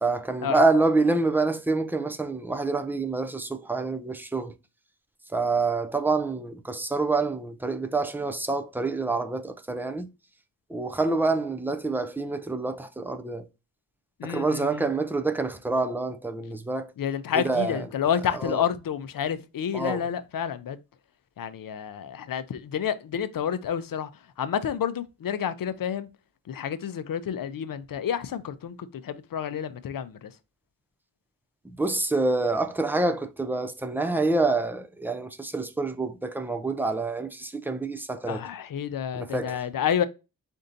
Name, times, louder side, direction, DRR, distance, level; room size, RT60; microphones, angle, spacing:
voice 1, 0.0-4.5 5.3-10.1 10.7-13.5 14.2-16.9 17.3-17.9 18.3-18.6 19.7-20.1 31.6-38.5 39.1-39.6, right 3 dB, 5° right, 0.3 m, -27 dB
voice 2, 14.2-14.9 17.0-20.8 21.4-24.1 24.4-26.1 26.5-28.8 29.0-30.3 38.3-40.1, left 8 dB, 65° left, 0.5 m, -29 dB
4.4 x 2.7 x 3.8 m
wide cardioid pair, 120°, 37 cm